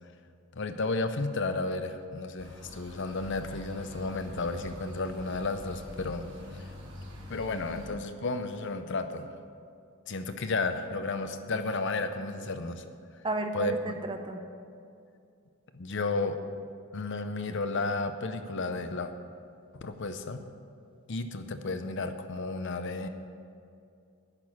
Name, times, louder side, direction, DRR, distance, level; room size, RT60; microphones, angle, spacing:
voice 1, 0.5-6.3 6.6-6.7 7.3-9.3 10.1-12.9 13.5-13.9 15.7-16.4 16.9-19.1 19.7-20.4 21.1-23.1, left 3 dB, 55° left, 9 dB, 0.6 m, -32 dB
sound 1, 2.4-7.9, equal, 55° right, 2.4 m, -45 dB
voice 2, 13.2-14.4, right 2 dB, 20° right, 5 dB, 0.7 m, -33 dB
11.0 x 6.1 x 8.5 m, 2.4 s
head